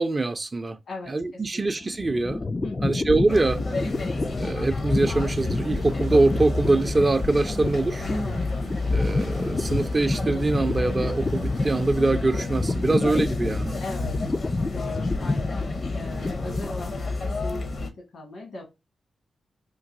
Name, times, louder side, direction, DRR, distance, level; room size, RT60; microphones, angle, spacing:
voice 1, 0.0-0.8 1.1-2.4 2.8-3.6 4.4-8.1 8.9-13.8, right 2 dB, 35° right, 0.5 m, -24 dB
voice 2, 0.9-1.6 2.6-3.0 8.1-8.4 13.8-14.3 14.7-18.6, left 2 dB, 80° left, 1.4 m, -39 dB
sound 1, 1.6-17.1, left 3 dB, 35° left, 0.3 m, -30 dB
sound 2, 3.3-17.9, left 2 dB, 60° left, 0.7 m, -30 dB
sound 3, 4.9-11.9, right 1 dB, 90° right, 0.6 m, -45 dB
3.8 x 2.6 x 2.5 m
supercardioid pair, 50°, 0 cm